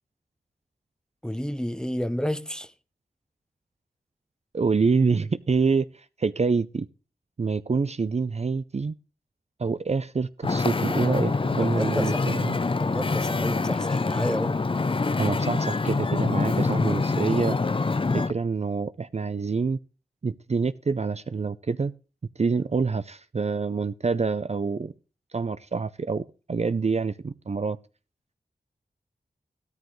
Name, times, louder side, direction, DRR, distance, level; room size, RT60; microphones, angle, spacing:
voice 1, 1.2-2.7 11.6-14.6, equal, 5° left, 0.8 m, -31 dB
voice 2, 4.5-6.9 7.4-8.9 9.6-12.6 15.2-17.6 18.1-19.8 20.2-21.9 22.4-24.9 25.3-27.8, right 4 dB, 40° right, 0.5 m, -26 dB
Wind / Ocean, 10.4-18.3, left 3 dB, 35° left, 0.6 m, -25 dB
14.5 x 13.0 x 3.2 m
cardioid pair, 50°, 16 cm